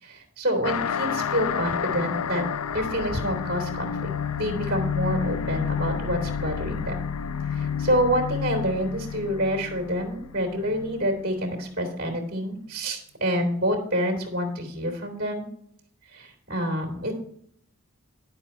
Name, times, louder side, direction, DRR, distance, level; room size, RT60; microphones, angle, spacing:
voice 1, 0.0-2.4 2.7-4.1 4.4-7.0 7.5-15.5 16.1-17.1, equal, 40° right, 2 dB, 3.0 m, -27 dB
sound 1, 0.6-11.6, left 7 dB, 90° left, 0.5 m, -30 dB
10.0 x 7.7 x 4.4 m, 0.68 s
head